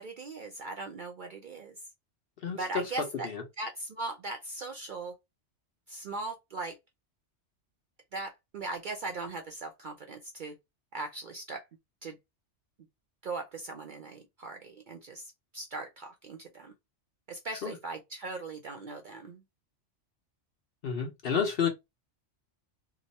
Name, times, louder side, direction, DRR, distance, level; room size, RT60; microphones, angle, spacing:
voice 1, 0.0-1.7 2.5-3.3 3.6-5.1 5.9-6.8 8.1-10.5 10.9-11.6 12.0-12.2 13.2-16.7 17.3-19.4, right 3 dB, 55° right, 0.5 m, -39 dB
voice 2, 2.4-2.8 3.2-3.4 17.6-17.8 20.8-21.7, left 7 dB, 55° left, 1.0 m, -30 dB
3.0 x 2.0 x 4.0 m
omnidirectional pair, 1.2 m